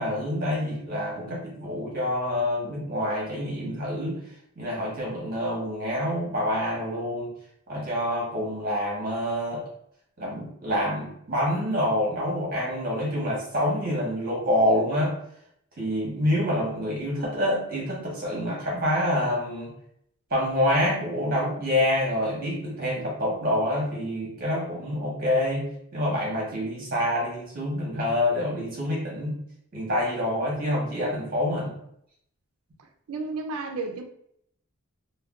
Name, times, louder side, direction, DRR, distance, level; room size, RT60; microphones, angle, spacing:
voice 1, 0.0-4.2 4.6-7.3 7.7-9.6 10.2-15.1 15.8-19.7 20.3-29.4 29.7-31.7, left 1 dB, 40° right, 0.8 m, -27 dB
voice 2, 33.1-34.0, right 3 dB, 80° right, 0.4 m, -32 dB
2.4 x 2.2 x 3.4 m
head